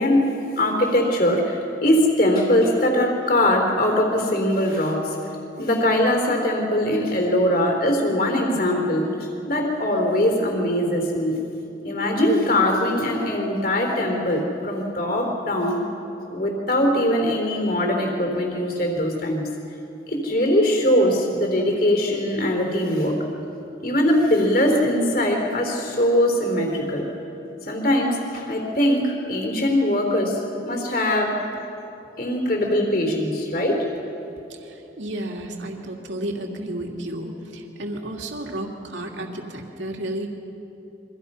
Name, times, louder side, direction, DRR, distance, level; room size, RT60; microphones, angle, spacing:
voice 1, 0.0-5.2 5.6-11.4 11.8-15.8 16.3-19.5 20.1-23.2 23.8-27.1 27.7-31.4 32.2-33.9, left 1 dB, 55° left, 2 dB, 3.7 m, -21 dB
voice 2, 34.6-40.3, right 1 dB, 85° right, 1 dB, 2.7 m, -32 dB
30.0 x 24.0 x 5.7 m, 3.0 s
head